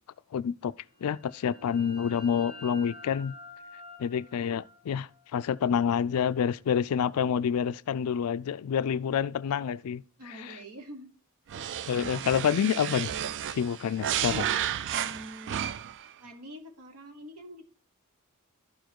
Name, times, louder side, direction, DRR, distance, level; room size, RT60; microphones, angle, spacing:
voice 1, 0.3-0.7 1.0-3.3 4.0-10.6 11.9-13.1 13.5-14.5, left 8 dB, 70° left, 0.3 m, -28 dB
sound 1, 1.0-6.5, left 1 dB, 35° right, 2.6 m, -49 dB
voice 2, 10.2-11.1 14.9-15.6 16.2-17.7, equal, 90° right, 1.2 m, -46 dB
sound 2, 11.5-16.1, right 10 dB, 55° right, 0.4 m, -32 dB
12.0 x 4.7 x 4.5 m
head